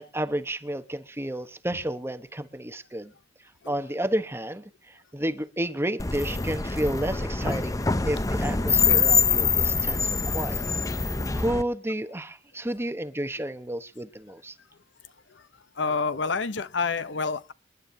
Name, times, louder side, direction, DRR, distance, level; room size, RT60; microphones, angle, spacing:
voice 1, 0.0-3.1 3.7-10.6 11.3-14.5, right 1 dB, 15° right, 1.0 m, -31 dB
sound 1, 6.0-11.6, left 5 dB, 15° left, 0.6 m, -24 dB
voice 2, 15.8-17.5, left 4 dB, 65° left, 0.8 m, -28 dB
29.0 x 11.0 x 2.7 m
head